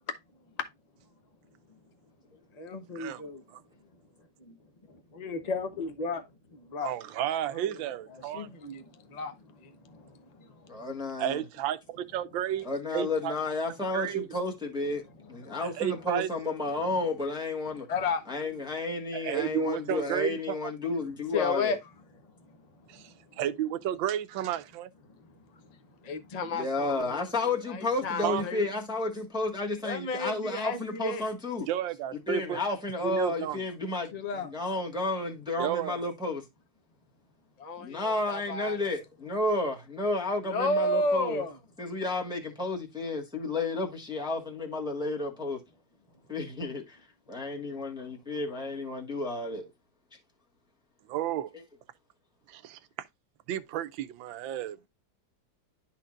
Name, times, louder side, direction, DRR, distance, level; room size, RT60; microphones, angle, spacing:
voice 1, 2.6-3.4 5.2-6.2 6.7-6.9 7.5-7.8 8.1-10.1 10.4-10.5 15.4-15.5 17.9-18.3 21.3-21.8 26.0-27.3 27.7-28.6 29.8-31.2 34.1-34.5 37.6-38.0 38.3-38.8 40.5-41.6, left 3 dB, 35° left, 0.7 m, -32 dB
voice 2, 6.8-8.5 11.2-12.7 12.9-13.3 13.9-14.3 15.8-16.3 19.1-20.6 22.9-24.9 28.2-28.4 31.7-32.6 33.0-33.6 35.6-36.0 51.1-51.5 52.5-52.8 53.5-54.9, right 11 dB, 90° right, 1.4 m, -32 dB
voice 3, 10.7-11.4 12.6-15.0 15.3-17.9 18.3-21.8 26.5-31.7 32.3-36.4 37.8-41.4 41.8-45.6 46.3-49.7 51.5-51.6, left 2 dB, 5° right, 1.4 m, -32 dB
11.5 x 4.3 x 2.5 m
omnidirectional pair, 2.0 m